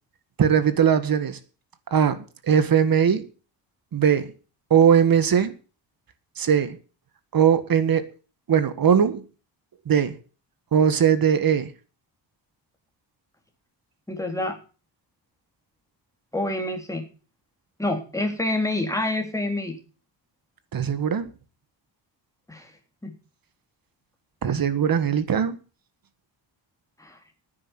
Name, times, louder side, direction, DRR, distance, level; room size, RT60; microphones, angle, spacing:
voice 1, 0.4-1.4 1.9-3.3 3.9-4.3 4.7-5.5 6.4-6.8 7.3-8.1 8.5-9.2 9.8-10.2 10.7-11.7 20.7-21.3 24.4-25.5, right 8 dB, 50° right, 12 dB, 1.7 m, -20 dB
voice 2, 14.1-14.6 16.3-17.1 17.8-19.8 22.5-22.7 23.0-23.1 27.0-27.2, left 2 dB, 5° left, 2 dB, 3.6 m, -27 dB
10.5 x 9.7 x 8.1 m, 0.36 s
cardioid pair, 125°, 44 cm